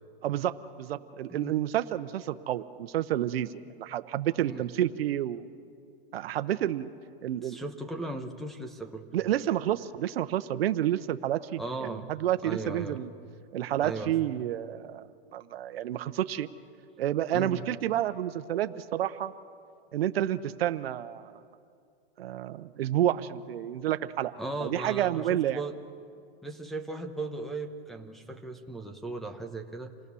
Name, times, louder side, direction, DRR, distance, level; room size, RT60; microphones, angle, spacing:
voice 1, 0.2-5.5 6.1-6.9 7.2-7.6 9.1-13.1 13.5-16.5 17.0-19.3 19.9-21.4 22.2-24.3 24.6-25.6, right 12 dB, 75° right, 11 dB, 1.0 m, -30 dB
voice 2, 7.4-9.1 11.6-12.1 12.4-13.0 13.8-14.1 17.3-17.6 24.4-25.7 26.4-29.9, right 2 dB, ahead, 0 dB, 1.0 m, -37 dB
28.0 x 19.0 x 7.0 m, 2.4 s
supercardioid pair, 150°, 30 cm